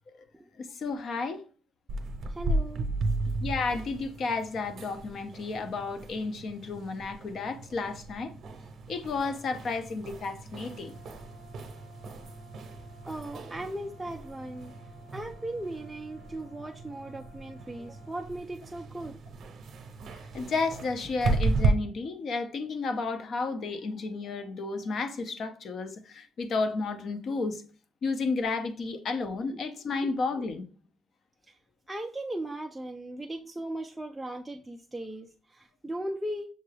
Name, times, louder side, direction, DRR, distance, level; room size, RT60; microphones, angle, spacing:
voice 1, 0.6-1.4 3.4-8.3 8.9-10.9 20.1-27.6 28.0-30.7, left 4 dB, 50° left, 0.5 m, -32 dB
sound 1, 1.9-21.7, right 3 dB, 55° right, 0.7 m, -35 dB
voice 2, 2.3-2.8 13.1-14.7 15.1-19.1 29.5-29.6 30.0-30.1 31.5-31.6 31.9-36.5, right 1 dB, 5° right, 0.3 m, -37 dB
Brass instrument, 10.5-18.3, left 3 dB, 20° left, 0.9 m, -56 dB
6.5 x 2.3 x 3.2 m
cardioid pair, 150°, 0 cm